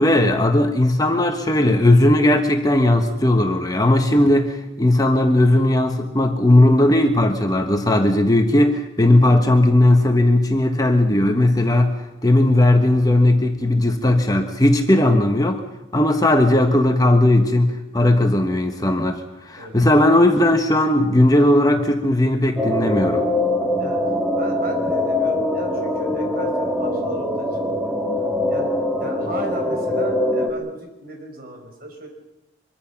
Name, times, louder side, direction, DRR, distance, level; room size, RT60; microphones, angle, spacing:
voice 1, 0.0-11.9 12.2-15.6 15.9-19.2 19.5-23.2, left 1 dB, 20° left, 5 dB, 1.3 m, -17 dB
voice 2, 19.6-19.9 23.8-28.0 28.5-28.7 29.0-32.1, right 1 dB, 50° right, 3 dB, 5.6 m, -36 dB
sound 1, 22.6-30.5, left 1 dB, ahead, 2.4 m, -23 dB
24.5 x 23.5 x 5.9 m, 0.96 s
head